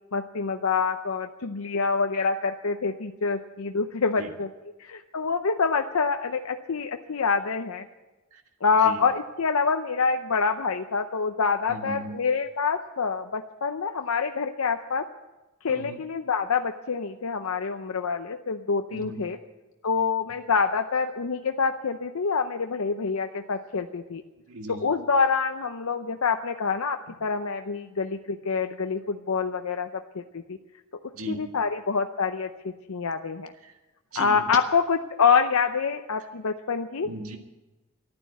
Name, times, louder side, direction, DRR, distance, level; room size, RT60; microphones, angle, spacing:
voice 1, 0.1-4.5 4.8-7.9 8.6-15.1 15.6-19.4 19.8-24.2 24.7-30.6 31.3-33.5 34.2-37.1, left 5 dB, 70° left, 6 dB, 0.7 m, -26 dB
voice 2, 11.7-12.2 15.7-16.0 18.9-19.2 24.5-24.9 31.1-31.4 33.6-33.8 34.1-34.5 37.0-37.4, right 1 dB, 70° right, 4 dB, 2.0 m, -37 dB
14.0 x 11.5 x 8.3 m, 1.1 s
head